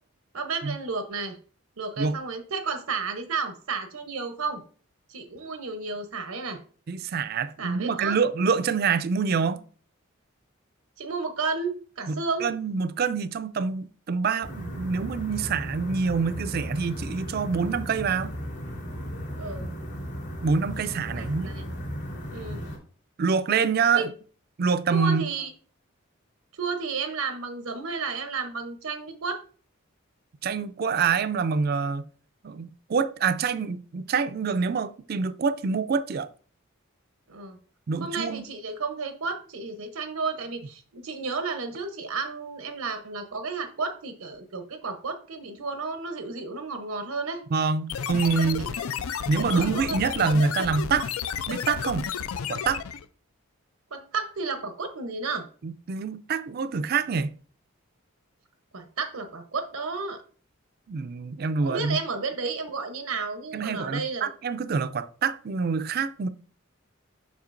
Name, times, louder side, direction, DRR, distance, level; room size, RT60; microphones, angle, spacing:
voice 1, 0.3-1.4 1.8-4.6 5.1-6.6 7.6-8.1 11.0-12.5 19.4-19.7 21.1-21.6 22.3-22.6 23.9-24.1 24.9-25.5 26.6-29.4 37.3-37.6 38.0-47.4 48.2-48.7 49.2-50.0 53.9-55.5 58.7-60.2 61.6-64.3, right 4 dB, 85° right, 0.8 m, -32 dB
voice 2, 6.9-9.6 12.1-18.3 20.4-21.5 23.2-24.1 24.6-25.3 30.4-32.1 32.4-36.3 37.9-38.4 47.5-48.7 49.3-51.1 51.5-52.1 52.5-52.8 55.6-57.4 60.9-62.0 63.5-66.3, right 5 dB, 45° right, 0.4 m, -26 dB
sound 1, 14.4-22.8, equal, 55° left, 2.6 m, -36 dB
sound 2, 47.9-53.1, left 7 dB, 80° left, 0.4 m, -32 dB
7.2 x 5.7 x 2.5 m
head